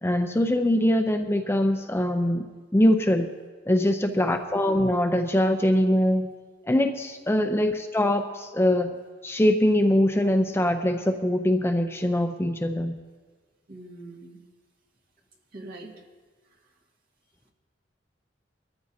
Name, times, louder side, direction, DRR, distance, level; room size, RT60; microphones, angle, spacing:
voice 1, 0.0-2.4 2.7-3.3 3.7-6.3 6.7-8.9 9.2-13.0, left 1 dB, 15° left, 6 dB, 0.5 m, -23 dB
voice 2, 4.0-4.5 7.3-7.5 13.7-14.4 15.5-15.9, right 2 dB, 50° right, 0 dB, 1.9 m, -42 dB
22.5 x 14.0 x 2.8 m, 1.4 s
head